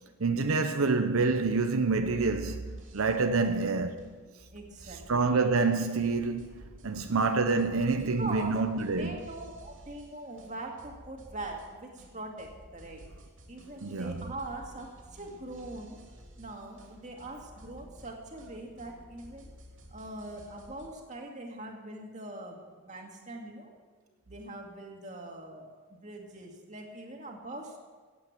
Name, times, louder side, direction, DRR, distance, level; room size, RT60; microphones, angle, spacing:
voice 1, 0.0-4.2 5.1-9.2 13.8-14.2, right 4 dB, 85° right, 0.7 m, -27 dB
sound 1, 2.6-20.9, right 1 dB, 65° right, 2.9 m, -53 dB
voice 2, 4.5-5.3 8.2-8.6 8.9-13.0 13.5-16.0 16.4-19.5 19.9-23.7 24.3-27.8, right 2 dB, 35° right, 2.2 m, -42 dB
16.5 x 8.7 x 7.4 m
head